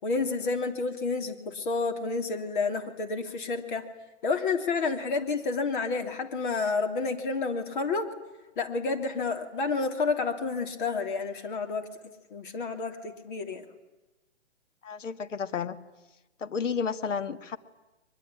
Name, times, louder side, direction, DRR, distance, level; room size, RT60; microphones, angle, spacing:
voice 1, 0.0-3.8 4.2-8.1 8.6-11.9 12.3-13.7, left 4 dB, 45° left, 6 dB, 3.1 m, -30 dB
voice 2, 14.8-15.8 16.4-17.6, left 6 dB, 80° left, 11 dB, 1.9 m, -31 dB
23.0 x 22.0 x 9.9 m, 1.0 s
hypercardioid pair, 160°, 37 cm